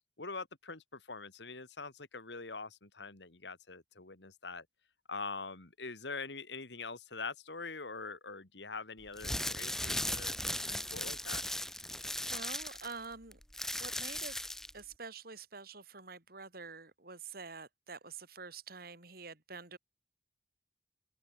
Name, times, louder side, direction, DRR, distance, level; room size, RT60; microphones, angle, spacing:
voice 1, 0.2-4.7 5.1-11.5, left 4 dB, 80° left, 2.7 m, -44 dB
sound 1, 9.1-14.8, left 1 dB, 5° left, 3.7 m, -37 dB
voice 2, 12.3-13.4 13.8-14.4 14.7-19.8, right 4 dB, 60° right, 4.5 m, -47 dB
open air
head